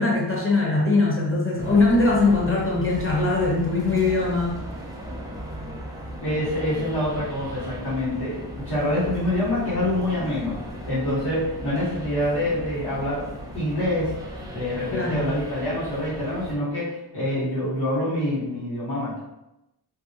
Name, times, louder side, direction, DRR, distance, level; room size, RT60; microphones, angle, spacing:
voice 1, 0.0-4.6 14.9-15.3, left 3 dB, 30° left, -3 dB, 0.9 m, -21 dB
sound 1, 1.6-16.6, equal, 10° right, 0.5 m, -37 dB
voice 2, 6.2-10.6 10.9-13.3 13.5-14.2 14.5-19.2, left 1 dB, 70° left, -9 dB, 1.4 m, -26 dB
3.0 x 2.6 x 2.7 m, 0.90 s
wide cardioid pair, 115°, 41 cm